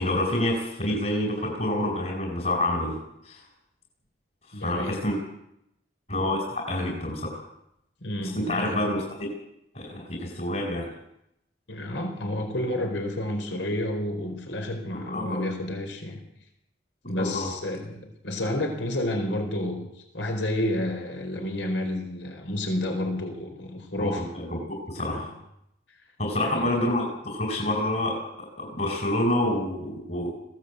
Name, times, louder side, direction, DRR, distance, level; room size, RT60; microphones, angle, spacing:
voice 1, 0.0-3.0 3.3-3.4 4.6-5.2 6.1-7.4 8.3-9.3 9.7-10.9 14.9-15.4 17.2-17.5 24.0-25.3 26.2-30.3, left 1 dB, 45° left, 0 dB, 4.6 m, -28 dB
voice 2, 4.5-5.0 8.0-8.8 11.7-16.2 17.1-24.2 25.0-25.1 26.4-26.7, left 1 dB, 80° left, 4 dB, 4.4 m, -30 dB
21.5 x 16.5 x 8.2 m, 0.80 s
head